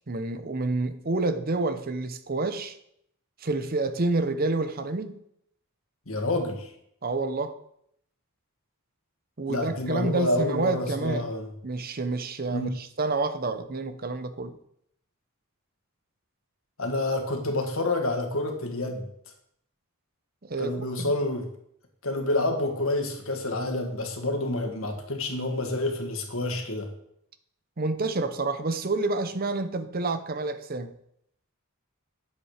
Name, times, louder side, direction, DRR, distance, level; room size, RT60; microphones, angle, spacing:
voice 1, 0.1-2.8 3.4-5.2 7.0-7.6 9.4-11.3 11.6-14.6 20.4-21.1 27.8-30.9, right 3 dB, 45° right, 0.8 m, -28 dB
voice 2, 6.1-6.7 9.5-11.5 12.5-12.7 16.8-19.1 20.6-21.5 22.0-26.9, left 2 dB, 70° left, 1.8 m, -28 dB
9.5 x 7.5 x 5.0 m
head